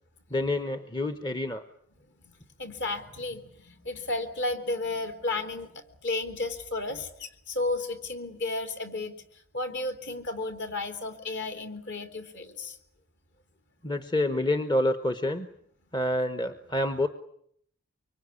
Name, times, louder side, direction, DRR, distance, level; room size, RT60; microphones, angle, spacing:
voice 1, 0.3-1.6 6.9-7.0 13.8-15.5 15.9-17.1, left 1 dB, 20° left, 9 dB, 1.1 m, -28 dB
voice 2, 2.2-12.8, left 2 dB, 50° left, 7 dB, 3.4 m, -33 dB
25.0 x 24.5 x 9.8 m, 0.68 s
head